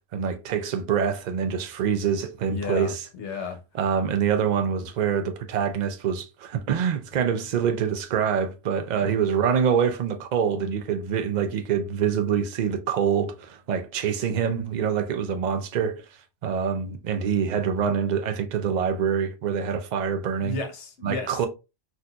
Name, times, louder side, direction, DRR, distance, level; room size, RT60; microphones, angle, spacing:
voice 1, 0.1-3.1 3.7-16.0 16.4-20.5 21.0-21.5, right 7 dB, 55° right, 0.5 m, -25 dB
voice 2, 2.5-3.6 9.0-9.1 20.4-21.3, left 3 dB, 85° left, 1.1 m, -33 dB
4.0 x 2.5 x 2.2 m
omnidirectional pair, 1.1 m